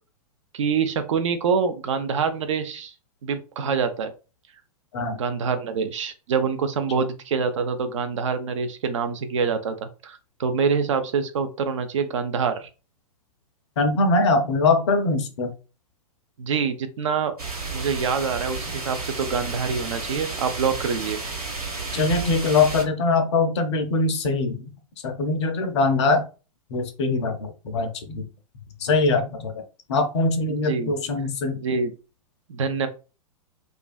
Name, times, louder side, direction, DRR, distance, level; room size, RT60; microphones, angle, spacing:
voice 1, 0.5-2.9 3.2-4.1 5.1-12.7 16.4-17.3 17.7-21.2 30.6-30.9 31.6-31.9 32.5-32.9, right 5 dB, 55° right, 9 dB, 0.4 m, -25 dB
voice 2, 13.8-15.5 21.9-24.6 25.0-26.2 26.7-28.2 28.8-29.6 29.9-31.6, left 3 dB, 50° left, 7 dB, 0.5 m, -22 dB
sound 1, 17.4-22.8, right 3 dB, 80° right, 0.9 m, -32 dB
2.4 x 2.2 x 2.2 m, 0.32 s
figure-of-eight pair, 105°, 19 cm